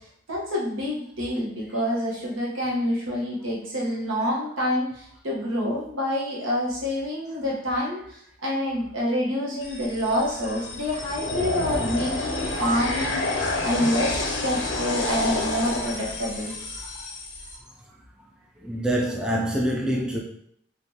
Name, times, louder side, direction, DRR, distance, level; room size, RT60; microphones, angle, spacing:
voice 1, 0.3-16.6, equal, 85° right, 1.1 m, -27 dB
sound 1, 9.6-17.6, left 2 dB, 70° left, 0.6 m, -29 dB
voice 2, 12.6-13.1 13.6-14.4 14.8-15.6 15.9-16.1 16.4-17.1 18.6-20.2, right 1 dB, 5° right, 0.3 m, -30 dB
3.2 x 2.5 x 2.8 m
head